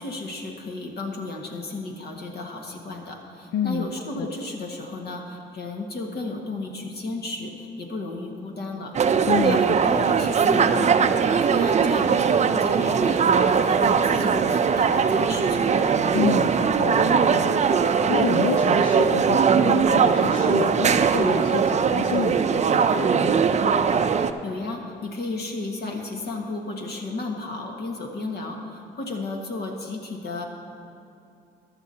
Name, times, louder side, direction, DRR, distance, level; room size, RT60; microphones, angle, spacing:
voice 1, 0.0-9.0 9.4-15.7 24.1-30.4, left 2 dB, 55° left, 1 dB, 1.7 m, -34 dB
voice 2, 3.5-3.9 4.2-4.3 9.3-10.1 16.1-23.5, left 9 dB, 75° left, 8 dB, 0.5 m, -29 dB
sound 1, 8.9-24.3, right 6 dB, 35° right, 0.5 m, -20 dB
14.5 x 11.5 x 2.8 m, 2.6 s
cardioid pair, 90°, 20 cm